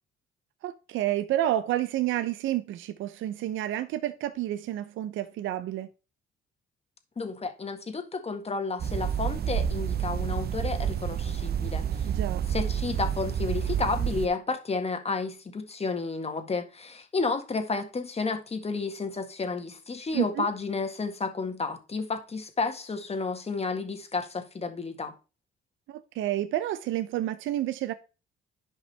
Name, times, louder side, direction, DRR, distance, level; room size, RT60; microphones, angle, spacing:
voice 1, 0.6-5.9 12.1-12.4 20.1-20.5 25.9-27.9, right 13 dB, 85° right, 0.6 m, -29 dB
voice 2, 7.2-12.1 12.5-25.1, left 4 dB, 30° left, 1.7 m, -31 dB
sound 1, 8.8-14.3, right 9 dB, 55° right, 0.8 m, -29 dB
11.0 x 5.4 x 3.4 m
cardioid pair, 90°, 20 cm